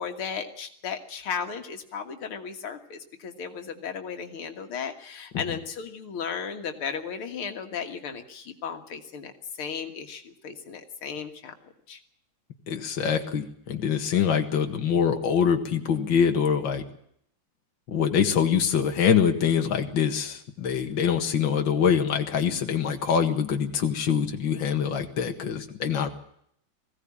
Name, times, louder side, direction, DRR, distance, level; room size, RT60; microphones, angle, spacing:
voice 1, 0.0-9.3 9.6-11.5 11.9-12.0, left 6 dB, 90° left, 5 dB, 2.6 m, -35 dB
voice 2, 12.7-16.8 17.9-26.1, left 7 dB, 65° left, 4 dB, 2.4 m, -24 dB
21.0 x 16.0 x 8.6 m, 0.69 s
omnidirectional pair, 2.3 m